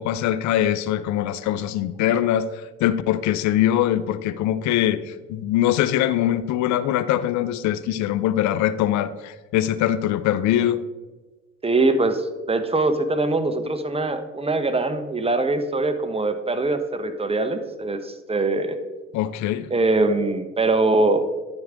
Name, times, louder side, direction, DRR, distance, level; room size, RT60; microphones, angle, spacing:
voice 1, 0.0-10.8 19.1-19.7, left 12 dB, 70° left, 14 dB, 0.5 m, -22 dB
voice 2, 11.6-18.8 19.7-21.2, right 2 dB, 20° right, 9 dB, 0.9 m, -22 dB
10.5 x 4.7 x 3.6 m, 1.2 s
supercardioid pair, 60°, 29 cm